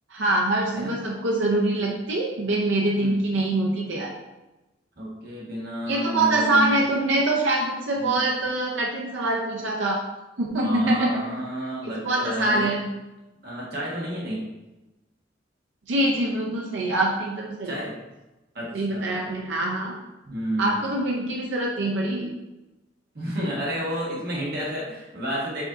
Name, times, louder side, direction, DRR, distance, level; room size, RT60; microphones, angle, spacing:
voice 1, 0.1-4.1 5.9-10.0 10.4-11.3 11.8-12.8 15.9-17.7 18.7-19.9 20.6-22.3, right 2 dB, 75° right, -2 dB, 0.6 m, -24 dB
voice 2, 5.0-6.9 7.9-8.2 10.6-12.7 13.4-14.4 17.6-17.9 18.5-19.3 20.2-20.8 23.1-25.6, equal, 55° right, -4 dB, 1.3 m, -30 dB
5.0 x 2.6 x 3.7 m, 1.0 s
head